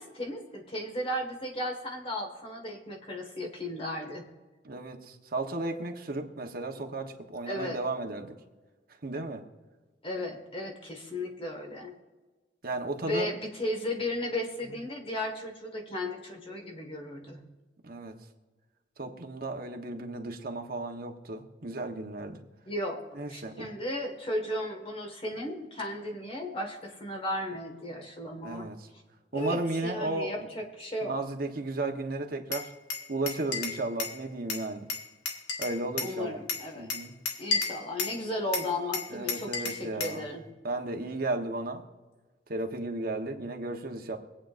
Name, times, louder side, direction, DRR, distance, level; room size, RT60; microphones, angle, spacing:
voice 1, 0.0-4.3 7.5-7.8 10.0-11.9 13.0-17.4 22.7-23.0 23.3-28.7 29.3-31.1 36.0-36.9 37.4-40.5, left 1 dB, 30° left, 2 dB, 1.8 m, -35 dB
voice 2, 4.6-8.4 9.0-9.4 12.6-13.3 17.8-18.1 19.0-22.4 23.1-23.7 28.4-28.9 29.3-30.5 31.0-32.7 33.1-34.9 35.6-36.4 36.8-37.1 39.1-40.3 40.6-41.8 42.5-44.2, right 2 dB, 55° right, 4 dB, 1.2 m, -34 dB
Glass, 32.5-34.2 34.5-36.1 36.5-38.2 38.5-40.2, left 4 dB, 80° left, 1.9 m, -33 dB
24.5 x 8.8 x 2.6 m, 1.3 s
head